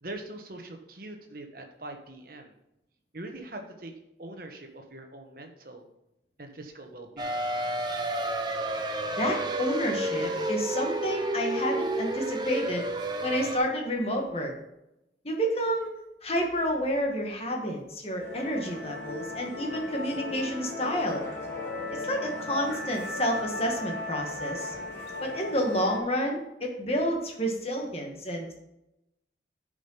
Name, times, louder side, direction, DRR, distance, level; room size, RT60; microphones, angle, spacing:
voice 1, 0.0-2.5 3.1-3.9 4.2-5.9 6.4-7.4, right 2 dB, 50° right, 4 dB, 1.2 m, -42 dB
sound 1, 7.2-13.6, right 1 dB, 25° right, 0.7 m, -30 dB
voice 2, 9.1-12.9 13.2-14.5 15.2-15.9 16.2-21.2 21.9-24.7 25.2-28.5, equal, 35° left, 1 dB, 1.6 m, -30 dB
Musical instrument, 18.2-26.0, left 2 dB, 75° left, 2.7 m, -37 dB
10.0 x 5.1 x 5.6 m, 0.88 s
head